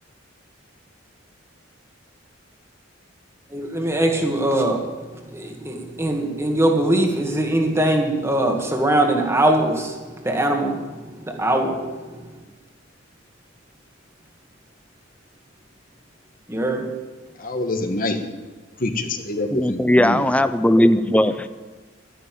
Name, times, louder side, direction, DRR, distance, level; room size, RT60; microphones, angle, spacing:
voice 1, 3.5-4.9 5.1-11.9 16.5-16.9, right 1 dB, 15° right, 2 dB, 2.0 m, -22 dB
voice 2, 17.4-18.2 18.8-20.2, left 2 dB, 45° left, 5 dB, 1.7 m, -26 dB
voice 3, 19.5-21.5, left 1 dB, 5° left, 11 dB, 0.6 m, -18 dB
13.0 x 11.0 x 9.1 m, 1.3 s
head